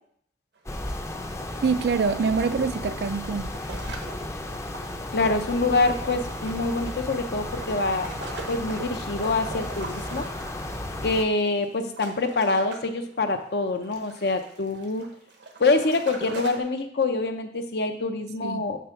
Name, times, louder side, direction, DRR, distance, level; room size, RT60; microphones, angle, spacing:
sound 1, 0.6-0.7 1.0-1.1 2.0-16.6, right 3 dB, 80° right, 1.1 m, -43 dB
sound 2, 0.7-11.2, left 1 dB, 15° left, 0.5 m, -34 dB
voice 1, 1.6-3.5 18.4-18.7, right 5 dB, 65° right, 0.4 m, -25 dB
voice 2, 5.1-8.1 8.5-10.2 11.0-15.0 15.6-18.8, left 3 dB, 65° left, 0.7 m, -25 dB
7.4 x 3.4 x 5.7 m
head